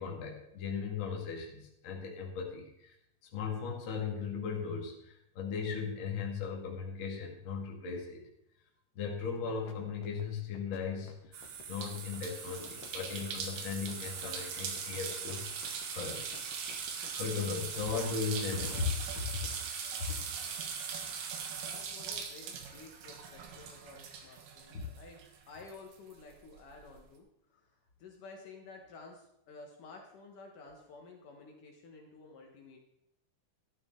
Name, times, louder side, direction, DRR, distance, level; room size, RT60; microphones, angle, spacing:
voice 1, 0.0-2.9 3.3-8.3 9.0-15.4 15.9-16.2 17.1-19.4 24.7-24.8, left 5 dB, 40° left, -1 dB, 2.1 m, -37 dB
sound 1, 9.3-9.7 10.0-17.9, left 9 dB, 85° left, 3.3 m, -53 dB
sound 2, 11.3-25.4 25.7-26.9, right 6 dB, 90° right, 3.4 m, -40 dB
sound 3, 12.3-20.7, equal, 5° right, 3.9 m, -55 dB
voice 2, 21.5-27.3 27.6-27.7 28.0-32.8, left 3 dB, 65° left, 1 dB, 2.7 m, -52 dB
13.0 x 12.0 x 3.7 m, 0.80 s
omnidirectional pair, 4.4 m